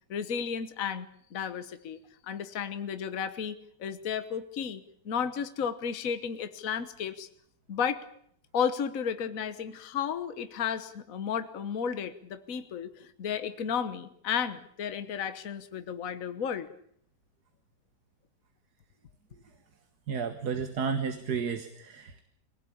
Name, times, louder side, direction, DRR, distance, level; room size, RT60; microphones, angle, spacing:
voice 1, 0.1-7.3 7.7-8.0 8.5-16.7, left 7 dB, 55° left, 11 dB, 1.5 m, -33 dB
voice 2, 20.1-22.2, right 6 dB, 65° right, 8 dB, 2.0 m, -32 dB
23.5 x 17.5 x 8.6 m, 0.66 s
omnidirectional pair, 1.8 m